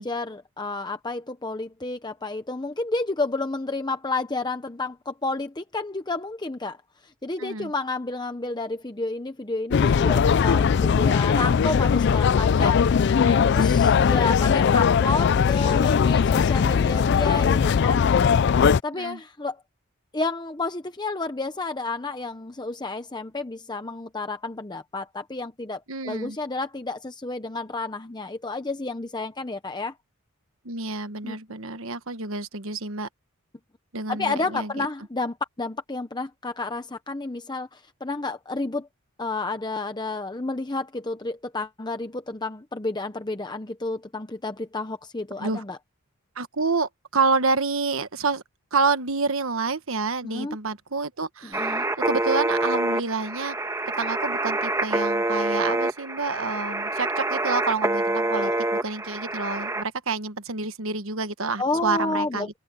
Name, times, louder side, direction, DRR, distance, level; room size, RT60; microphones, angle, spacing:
voice 1, 0.0-6.8 7.0-13.1 13.5-18.0 18.8-19.6 20.1-29.9 31.2-31.4 34.1-38.9 39.2-45.8 50.2-50.6 51.5-51.9 58.3-58.6 61.6-62.6, left 3 dB, 20° left, 0.8 m, -30 dB
voice 2, 7.4-7.7 13.2-13.5 18.9-19.2 25.9-26.4 30.6-33.1 33.9-34.9 45.4-45.6 46.4-48.4 48.7-53.6 54.0-62.6, right 4 dB, 65° right, 1.3 m, -28 dB
sound 1, 9.7-18.8, left 6 dB, 50° left, 0.3 m, -19 dB
sound 2, 51.5-59.8, right 2 dB, 15° right, 1.9 m, -26 dB
head